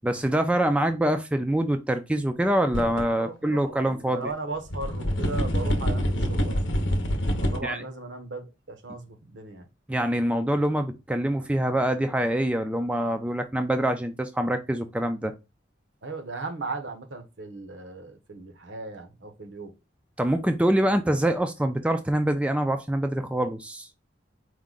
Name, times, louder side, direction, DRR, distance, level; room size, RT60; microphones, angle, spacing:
voice 1, 0.0-4.2 7.6-7.8 9.9-15.3 20.2-23.9, right 1 dB, 5° right, 0.3 m, -25 dB
sound 1, 2.7-3.0 3.5-3.6 4.7-7.6, equal, 70° left, 0.7 m, -26 dB
voice 2, 3.1-6.6 7.4-9.7 16.0-19.7, right 3 dB, 70° right, 0.8 m, -37 dB
4.7 x 2.1 x 3.7 m
head